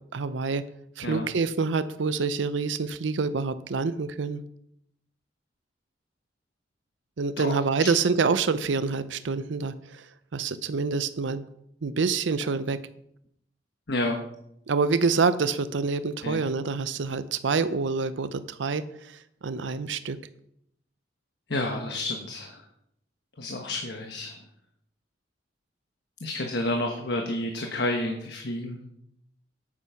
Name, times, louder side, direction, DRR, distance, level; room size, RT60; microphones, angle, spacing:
voice 1, 0.1-0.6 1.0-4.4 7.2-11.4 11.8-12.8 14.7-20.2, right 4 dB, 85° right, 13 dB, 0.6 m, -27 dB
voice 2, 7.4-7.9 13.9-14.2 16.2-16.4 21.5-22.6 23.4-24.4 26.2-28.8, left 1 dB, 65° left, 3 dB, 1.3 m, -30 dB
9.3 x 8.5 x 5.8 m, 0.75 s
head